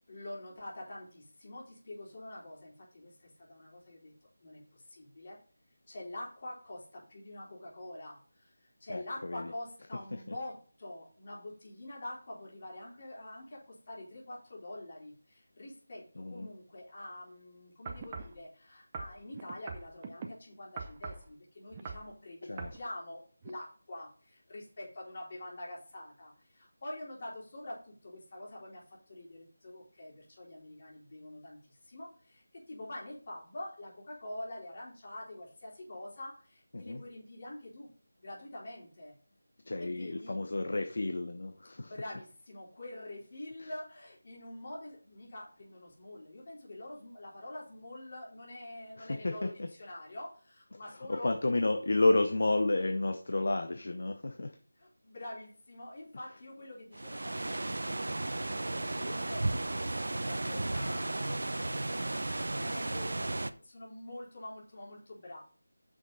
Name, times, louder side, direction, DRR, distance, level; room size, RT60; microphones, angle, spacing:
voice 1, 0.1-4.1 4.4-5.4 5.9-37.9 38.2-39.1 39.8-40.4 41.8-51.7 54.8-57.6 58.3-61.4 61.9-65.4, left 1 dB, 40° left, -4 dB, 3.9 m, -46 dB
voice 2, 8.9-9.5 10.1-10.3 16.2-16.5 22.5-22.7 36.7-37.0 39.7-41.9 43.6-43.7 49.0-49.7 51.1-54.6, left 2 dB, 60° left, 6 dB, 0.9 m, -31 dB
sound 1, 17.9-18.4 18.9-20.3 20.8-21.3 21.7-22.1 22.6-22.8 23.4-23.5, right 5 dB, 20° right, 0.7 m, -42 dB
sound 2, 56.9-63.5, right 2 dB, 65° right, 0.7 m, -34 dB
7.7 x 6.3 x 4.0 m, 0.41 s
figure-of-eight pair, 170°, 0 cm